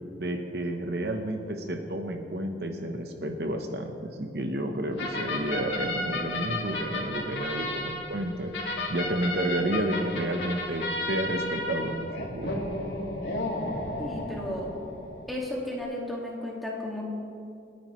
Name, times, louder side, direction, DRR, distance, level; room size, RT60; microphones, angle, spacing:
voice 1, 0.2-8.5 8.9-12.5, right 1 dB, 60° right, 4 dB, 1.0 m, -31 dB
sound 1, 5.0-15.3, left 1 dB, 80° left, 2.3 m, -33 dB
voice 2, 14.0-14.7 15.3-17.0, left 1 dB, ahead, -4 dB, 2.1 m, -34 dB
28.5 x 9.6 x 3.2 m, 2.5 s
head